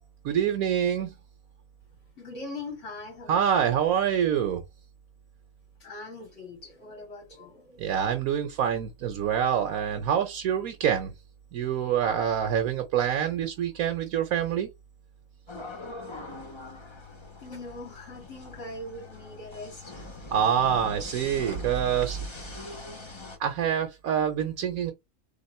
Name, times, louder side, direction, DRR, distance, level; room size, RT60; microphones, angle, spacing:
voice 1, 0.2-1.1 3.3-4.6 7.8-11.1 11.5-14.7 20.3-22.2 23.4-24.9, right 8 dB, 80° right, 1.3 m, -26 dB
voice 2, 2.2-3.8 5.8-7.9 17.4-20.0, left 2 dB, 55° left, 2.3 m, -41 dB
sound 1, 15.5-23.4, left 2 dB, 25° left, 0.9 m, -42 dB
3.6 x 3.4 x 4.2 m
omnidirectional pair, 1.5 m